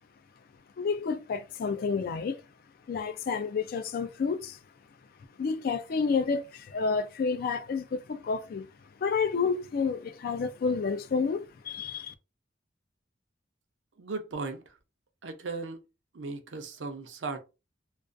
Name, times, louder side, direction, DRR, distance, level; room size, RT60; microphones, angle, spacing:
voice 1, 0.8-2.4 2.9-4.6 5.4-8.7 9.0-12.1, left 5 dB, 50° left, 0.3 m, -30 dB
voice 2, 14.0-14.8 15.2-15.8 16.1-17.4, right 4 dB, 75° right, 0.5 m, -37 dB
2.4 x 2.3 x 2.4 m
head